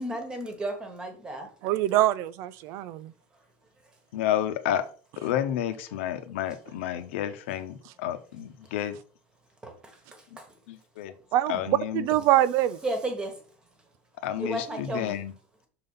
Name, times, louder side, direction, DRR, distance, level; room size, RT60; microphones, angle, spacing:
voice 1, 0.0-1.5 9.6-9.7 12.8-13.3 14.4-15.1, right 1 dB, 10° right, 1.4 m, -32 dB
voice 2, 1.6-3.1 11.3-12.8, right 14 dB, 45° right, 0.5 m, -24 dB
voice 3, 4.1-4.9 5.2-9.0 10.3-10.4 10.7-11.1 11.5-12.1 14.2-15.3, left 11 dB, 75° left, 1.1 m, -30 dB
6.7 x 4.0 x 5.6 m
supercardioid pair, 165°, 7 cm